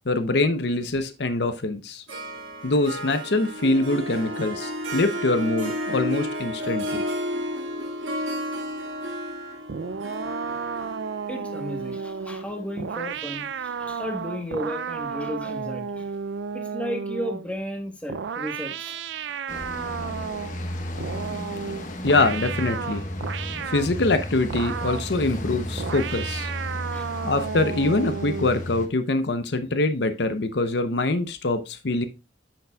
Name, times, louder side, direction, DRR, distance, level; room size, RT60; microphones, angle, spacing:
voice 1, 0.1-2.0 2.6-7.0 22.0-23.1 23.7-26.5 27.2-32.1, left 2 dB, 65° left, 9 dB, 0.7 m, -24 dB
Harp, 2.1-13.5, equal, 85° right, 2.0 m, -32 dB
sound 1, 9.7-17.5 18.1-20.6 21.0-23.9 24.5-25.1 25.8-28.6, right 6 dB, 70° right, 0.4 m, -33 dB
voice 2, 11.3-16.1 16.5-19.0 20.2-20.3 26.9-27.1, equal, 5° left, 3 dB, 1.2 m, -34 dB
sound 2, 19.5-28.9, left 1 dB, 40° left, 1.2 m, -33 dB
10.0 x 6.7 x 2.3 m, 0.26 s
head